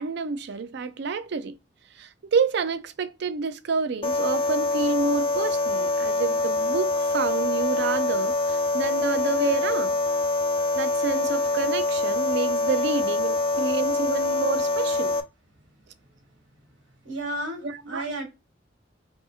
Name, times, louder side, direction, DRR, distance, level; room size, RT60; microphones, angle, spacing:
voice 1, 0.0-1.6 1.9-10.0 10.7-15.2 17.6-18.1, right 5 dB, 60° right, 0.4 m, -29 dB
sound 1, 4.0-15.2, left 2 dB, 30° left, 0.4 m, -25 dB
voice 2, 17.0-18.2, right 1 dB, 80° right, 1.7 m, -32 dB
5.2 x 2.7 x 2.3 m
head